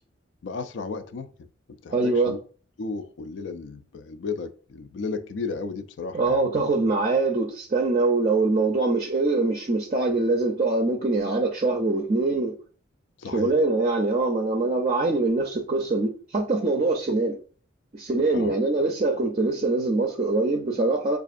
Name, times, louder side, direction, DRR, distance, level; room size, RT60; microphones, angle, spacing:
voice 1, 0.4-1.3 1.8-2.4 2.8-6.4 13.2-13.6 18.3-18.5, left 4 dB, 65° left, 0.4 m, -34 dB
voice 2, 1.9-2.3 6.1-12.5 13.3-17.4 17.9-21.2, right 3 dB, 35° right, 0.4 m, -23 dB
5.0 x 2.4 x 2.4 m
head